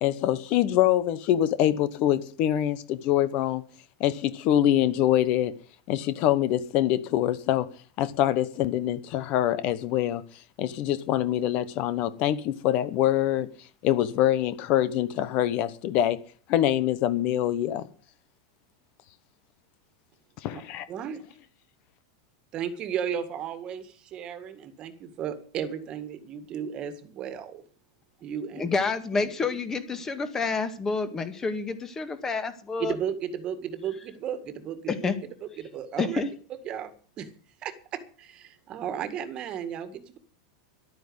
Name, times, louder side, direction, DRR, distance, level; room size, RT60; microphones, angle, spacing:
voice 1, 0.0-3.6 4.0-5.5 5.9-7.7 8.0-10.2 10.6-13.5 13.8-16.2 16.5-17.8 20.4-20.8, left 12 dB, 45° left, 1.1 m, -24 dB
voice 2, 20.9-21.2 22.5-27.6 28.2-28.7 29.1-29.3 32.8-35.1 35.6-36.2 36.7-37.3 37.6-40.2, right 8 dB, 30° right, 1.9 m, -34 dB
voice 3, 28.6-33.0 34.9-35.2 36.0-36.3, left 4 dB, 15° left, 1.8 m, -28 dB
12.0 x 9.1 x 8.0 m
supercardioid pair, 145°, 3 cm